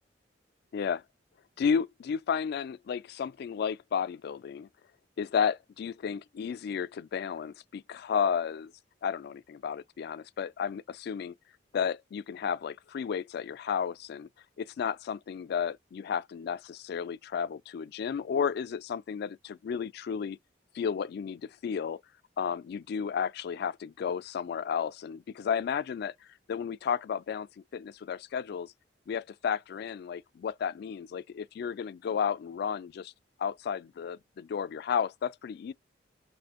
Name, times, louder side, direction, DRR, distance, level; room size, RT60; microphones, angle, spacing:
voice 1, 0.7-1.0 1.6-4.7 5.2-8.7 9.0-11.3 11.7-14.3 14.6-20.4 20.7-22.0 22.4-26.1 26.5-27.5 27.7-28.7 29.1-33.1 33.4-35.7, left 7 dB, 60° left, 0.3 m, -32 dB
4.1 x 2.8 x 2.9 m
head